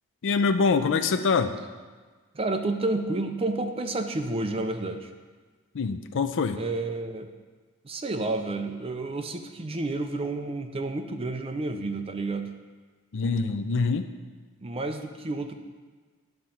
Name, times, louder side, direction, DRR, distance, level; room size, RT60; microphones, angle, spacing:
voice 1, 0.2-1.5 5.7-6.6 13.1-14.1, left 4 dB, 55° left, 9 dB, 0.5 m, -24 dB
voice 2, 2.3-5.1 6.5-7.3 7.8-12.5 14.6-15.5, right 2 dB, 25° right, 5 dB, 0.6 m, -30 dB
11.0 x 3.7 x 5.7 m, 1.4 s
head